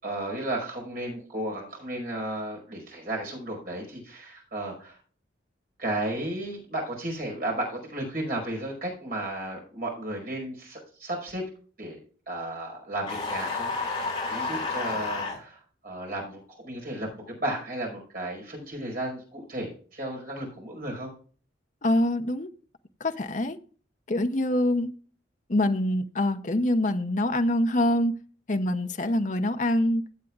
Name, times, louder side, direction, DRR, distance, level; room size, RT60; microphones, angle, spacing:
voice 1, 0.0-5.0 5.8-11.4 11.8-12.0 12.3-21.1, right 1 dB, 50° right, 5.2 m, -34 dB
sound 1, 13.1-15.4, left 3 dB, 25° left, 5.2 m, -30 dB
voice 2, 21.8-22.5 23.0-23.6 24.1-24.9 25.5-28.1 28.5-30.0, left 1 dB, 40° left, 0.8 m, -25 dB
15.5 x 8.3 x 2.4 m
head